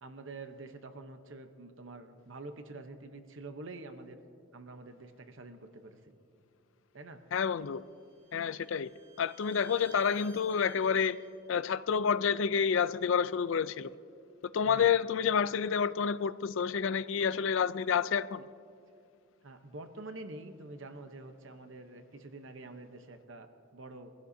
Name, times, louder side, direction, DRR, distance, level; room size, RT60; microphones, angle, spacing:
voice 1, 0.0-4.2 4.5-6.1 6.9-7.2 14.6-15.0 19.4-24.1, right 2 dB, 70° right, 0.9 m, -47 dB
voice 2, 7.3-7.8 8.3-8.9 9.2-11.2 11.5-14.0 14.5-18.4, left 7 dB, 70° left, 0.4 m, -29 dB
Bowed string instrument, 7.6-11.4, right 4 dB, 25° right, 2.6 m, -57 dB
25.0 x 16.0 x 2.7 m
head